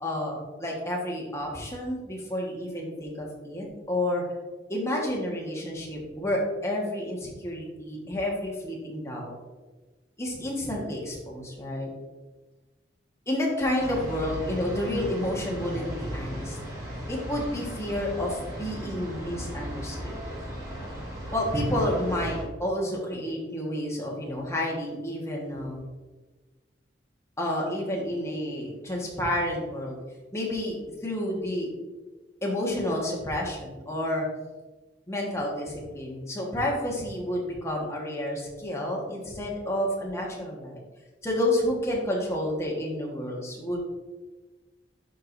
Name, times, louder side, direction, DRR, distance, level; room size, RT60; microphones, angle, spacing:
voice 1, 0.0-4.2 4.7-9.3 10.2-11.9 13.3-16.6 17.1-20.1 21.3-25.8 27.4-30.0 30.3-30.8 31.0-31.7 32.4-34.2 35.1-40.8 41.2-43.8, left 1 dB, 15° left, -3 dB, 1.6 m, -30 dB
sound 1, 13.8-22.4, equal, 20° right, 1.9 m, -36 dB
11.0 x 4.7 x 2.7 m, 1.2 s
head